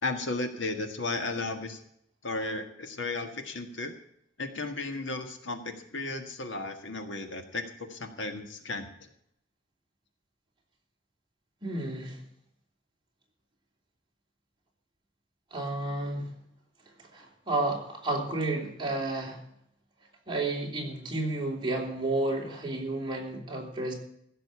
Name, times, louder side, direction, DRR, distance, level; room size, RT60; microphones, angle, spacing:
voice 1, 0.0-1.8 2.2-4.0 4.4-7.6 7.9-8.9, left 2 dB, 65° left, 6 dB, 1.7 m, -34 dB
voice 2, 11.6-12.2 15.5-16.3 17.0-19.4 20.3-23.9, right 2 dB, 25° right, -1 dB, 3.3 m, -31 dB
15.5 x 6.9 x 8.3 m, 0.72 s
head